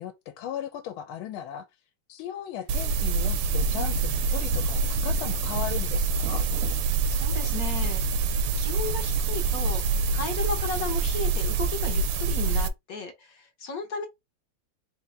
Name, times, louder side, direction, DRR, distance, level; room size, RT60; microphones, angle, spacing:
voice 1, 0.0-1.7 2.1-6.5, left 10 dB, 90° left, 1.5 m, -37 dB
Rain, 2.7-9.9, right 7 dB, 65° right, 0.8 m, -46 dB
sound 1, 2.7-12.7, right 4 dB, 85° right, 1.4 m, -26 dB
voice 2, 7.1-14.1, left 4 dB, 60° left, 1.0 m, -35 dB
4.1 x 2.7 x 3.5 m
omnidirectional pair, 2.3 m